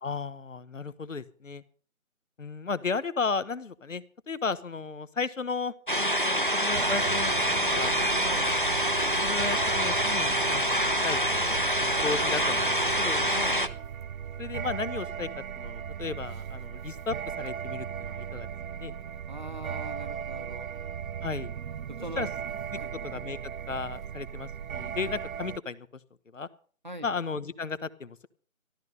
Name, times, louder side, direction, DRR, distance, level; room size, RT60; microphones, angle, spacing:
voice 1, 0.0-1.6 2.4-8.0 9.1-13.3 14.4-15.3 15.6-18.5 18.8-18.9 21.2-21.5 22.2-22.3 23.0-23.4 23.7-25.9 26.3-26.5 27.0-28.3, left 4 dB, 65° left, 16 dB, 1.1 m, -34 dB
sound 1, 5.9-13.7, equal, 40° left, 0.5 m, -26 dB
sound 2, 6.7-25.6, right 8 dB, 75° right, 0.5 m, -37 dB
voice 2, 8.3-8.6 13.3-13.6 19.3-20.7 21.9-22.3 22.7-22.9 26.8-27.1, equal, 35° right, 9 dB, 0.9 m, -41 dB
13.5 x 12.5 x 5.3 m, 0.43 s
figure-of-eight pair, 180°, 41 cm